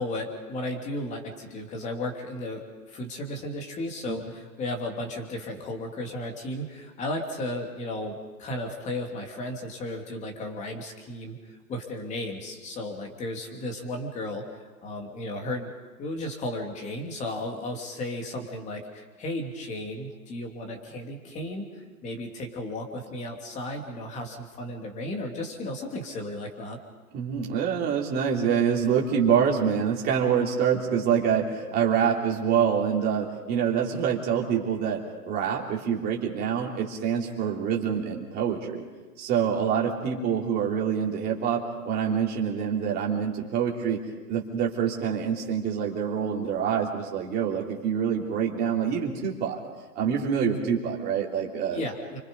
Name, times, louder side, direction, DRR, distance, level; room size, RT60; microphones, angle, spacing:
voice 1, 0.0-14.4 14.8-15.7 16.0-21.7 22.0-26.8 51.7-52.2, left 1 dB, 15° left, 3 dB, 2.7 m, -34 dB
voice 2, 27.1-38.8 39.2-44.0 44.3-49.6 49.9-51.8, right 7 dB, 20° right, -2 dB, 3.3 m, -26 dB
30.0 x 25.5 x 5.4 m, 1.3 s
hypercardioid pair, 155°, 47 cm